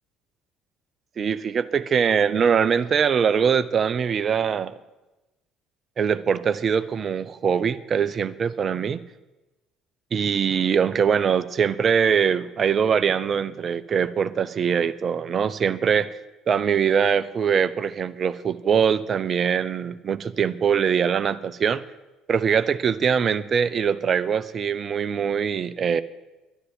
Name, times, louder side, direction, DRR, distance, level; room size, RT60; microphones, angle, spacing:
voice 1, 1.2-4.7 6.0-9.0 10.1-16.2 16.5-21.8 22.3-26.0, right 7 dB, 40° right, 14 dB, 0.7 m, -22 dB
11.0 x 9.8 x 9.4 m, 1.1 s
figure-of-eight pair, 55°, 0 cm